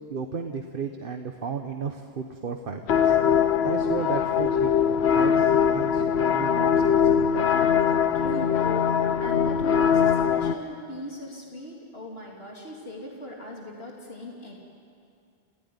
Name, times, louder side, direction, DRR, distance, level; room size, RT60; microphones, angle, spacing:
voice 1, 0.1-3.2 3.6-4.7 5.0-7.3, right 5 dB, 60° right, 5 dB, 1.2 m, -34 dB
sound 1, 2.9-10.5, left 7 dB, 90° left, 1.0 m, -22 dB
voice 2, 7.8-14.5, left 1 dB, 70° left, -2 dB, 3.5 m, -39 dB
28.0 x 16.0 x 9.5 m, 2.4 s
omnidirectional pair, 1.1 m